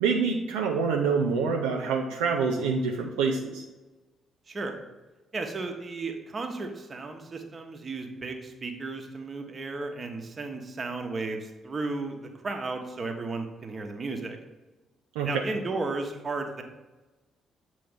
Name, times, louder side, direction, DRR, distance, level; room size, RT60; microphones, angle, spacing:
voice 1, 0.0-3.6 15.2-15.4, right 5 dB, 70° right, 0 dB, 0.4 m, -26 dB
voice 2, 4.5-4.8 5.3-14.4 15.2-16.6, right 3 dB, 35° right, 4 dB, 0.9 m, -34 dB
7.7 x 3.1 x 5.0 m, 1.1 s
figure-of-eight pair, 40°, 0 cm